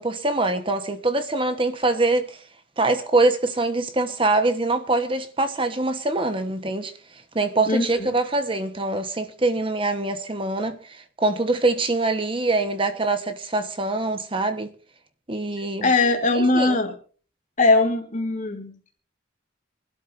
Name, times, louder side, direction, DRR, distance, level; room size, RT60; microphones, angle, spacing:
voice 1, 0.0-2.4 2.8-6.9 7.3-14.7 15.3-15.9 16.3-16.8, right 2 dB, 25° right, 1.1 m, -24 dB
voice 2, 7.7-8.1 15.8-16.9 17.6-19.0, left 3 dB, 40° left, 2.8 m, -21 dB
26.5 x 12.5 x 2.6 m
head